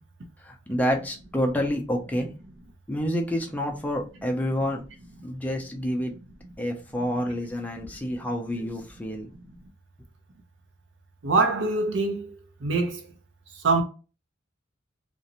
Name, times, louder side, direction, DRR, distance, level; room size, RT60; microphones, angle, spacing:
voice 1, 0.5-2.3 2.9-4.8 5.2-6.1 6.6-9.3, equal, 10° left, 0.4 m, -28 dB
voice 2, 11.2-12.3 12.6-13.0 13.6-13.8, right 3 dB, 65° right, 0.6 m, -24 dB
2.5 x 2.1 x 2.8 m
head